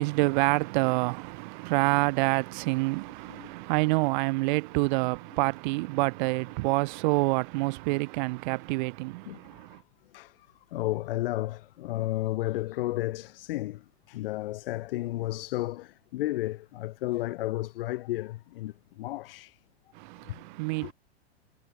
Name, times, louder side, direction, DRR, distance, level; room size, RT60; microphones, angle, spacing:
voice 1, 0.0-9.8 20.0-20.9, right 25 dB, 45° right, 1.7 m, -27 dB
voice 2, 9.3-9.6 10.1-10.3 10.7-13.8 14.1-19.6 20.8-20.9, left 16 dB, 55° left, 2.5 m, -32 dB
hypercardioid pair, 140°, 33 cm